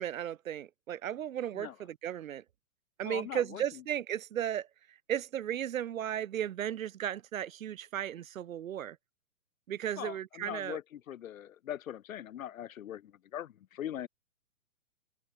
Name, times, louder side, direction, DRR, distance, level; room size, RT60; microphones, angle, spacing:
voice 1, 0.0-2.4 3.0-4.7 5.1-9.0 9.7-10.8, right 10 dB, 70° right, 0.9 m, -35 dB
voice 2, 3.0-3.8 10.0-14.1, left 11 dB, 75° left, 0.7 m, -41 dB
hypercardioid pair, 135°, 42 cm